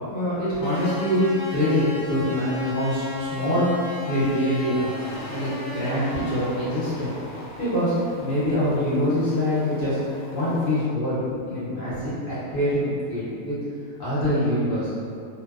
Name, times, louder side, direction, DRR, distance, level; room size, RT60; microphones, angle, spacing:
voice 1, 0.1-5.0 5.3-7.1 7.6-10.0 10.3-11.2 11.4-13.6 14.0-14.9, left 1 dB, 50° left, -11 dB, 0.7 m, -24 dB
sound 1, 0.6-10.7, left 2 dB, 90° left, 1.1 m, -36 dB
2.6 x 2.1 x 2.3 m, 2.4 s
omnidirectional pair, 1.6 m